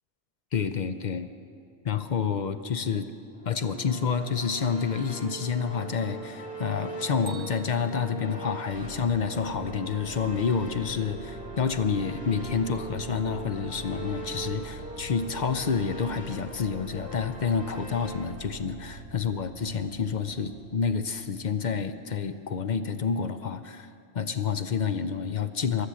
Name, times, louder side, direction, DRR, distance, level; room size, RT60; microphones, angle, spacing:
voice 1, 0.5-1.3 1.8-3.1 3.5-23.9 24.1-25.9, left 6 dB, 50° left, 10 dB, 0.7 m, -29 dB
sound 1, 3.3-18.1, right 1 dB, 20° left, 3.0 m, -41 dB
Bell, 7.3-9.3, right 7 dB, 30° right, 1.1 m, -50 dB
sound 2, 8.7-22.0, right 5 dB, 85° right, 1.0 m, -45 dB
15.0 x 11.5 x 7.4 m, 2.5 s
omnidirectional pair, 1.1 m